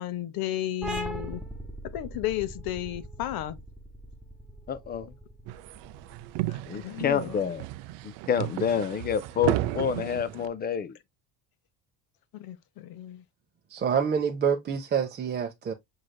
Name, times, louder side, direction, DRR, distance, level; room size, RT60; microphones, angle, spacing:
voice 1, 0.0-1.4 1.9-3.6 6.5-7.4 12.3-13.2, left 13 dB, 60° left, 0.7 m, -33 dB
sound 1, 0.8-8.1, right 1 dB, ahead, 1.2 m, -40 dB
voice 2, 4.7-5.1 6.7-7.7 8.0-11.0, left 7 dB, 25° left, 0.4 m, -28 dB
sound 2, 5.5-10.5, right 15 dB, 80° right, 0.6 m, -33 dB
voice 3, 13.7-15.7, right 7 dB, 25° right, 0.6 m, -27 dB
6.3 x 3.3 x 2.2 m
cardioid pair, 135°, 42 cm